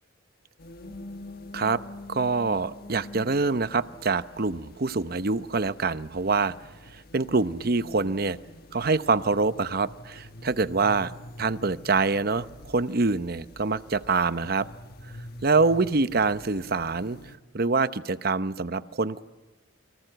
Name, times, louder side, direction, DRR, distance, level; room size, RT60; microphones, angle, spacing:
sound 1, 0.6-17.4, left 1 dB, 50° left, 1.5 m, -46 dB
voice 1, 2.1-6.5 6.9-8.4 8.7-11.1 11.4-14.7 15.4-17.2 17.5-19.2, right 4 dB, 50° right, 13 dB, 0.8 m, -25 dB
29.0 x 24.5 x 8.0 m, 1.2 s
head